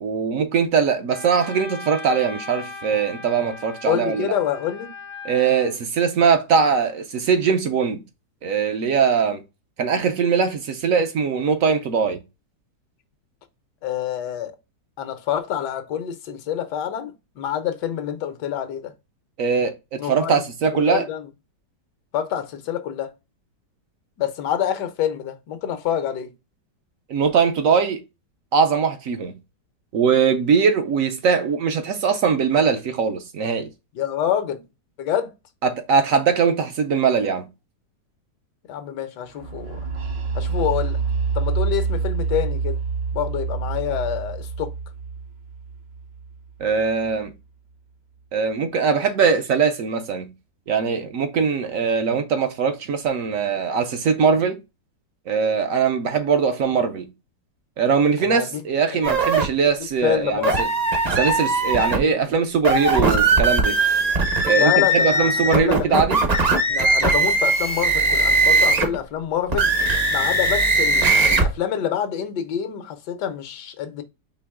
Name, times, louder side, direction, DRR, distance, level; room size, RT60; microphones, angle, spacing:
voice 1, 0.0-4.3 5.2-8.0 8.4-9.4 9.8-12.2 19.4-21.1 27.1-28.0 28.5-29.3 29.9-33.7 35.6-37.5 46.6-47.3 48.3-50.3 50.7-54.6 55.3-57.1 57.8-60.7 61.2-63.8 64.4-66.2, right 6 dB, 65° right, 0.9 m, -21 dB
Wind instrument woodwind instrument, 1.1-5.7, left 3 dB, 35° left, 0.4 m, -38 dB
voice 2, 3.9-4.9 13.8-14.6 15.0-18.9 20.0-20.4 20.9-21.2 22.1-23.1 24.2-26.3 33.9-34.6 35.0-35.3 38.7-39.8 40.3-41.0 41.3-42.8 43.1-44.7 58.2-58.6 58.9-59.2 60.0-60.7 64.6-66.0 66.7-69.7 70.1-74.0, left 9 dB, 75° left, 1.2 m, -27 dB
sound 1, 39.4-47.1, right 5 dB, 80° right, 1.7 m, -27 dB
sound 2, 59.0-59.4 60.4-62.0 62.5-69.0 69.5-71.5, right 2 dB, 35° right, 0.6 m, -19 dB
4.6 x 2.9 x 3.4 m
omnidirectional pair, 1.9 m